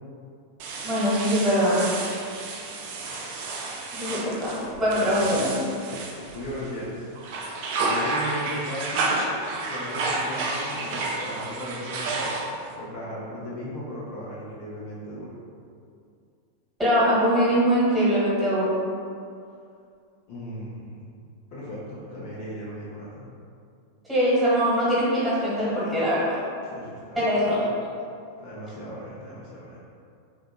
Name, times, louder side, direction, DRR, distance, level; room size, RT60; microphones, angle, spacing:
sound 1, 0.6-6.8 7.2-12.7, right 3 dB, 50° right, 0.4 m, -30 dB
voice 1, 0.8-1.8 3.9-5.5 16.8-18.8 24.1-26.4 27.1-27.6, equal, 10° right, -10 dB, 1.3 m, -22 dB
voice 2, 6.3-7.1 7.8-9.1 9.7-12.3 12.7-15.4 20.3-21.0 21.5-23.3 26.6-27.6 28.4-29.8, equal, 45° left, -7 dB, 0.6 m, -36 dB
3.5 x 2.4 x 2.3 m, 2.4 s
figure-of-eight pair, 90°, 0 cm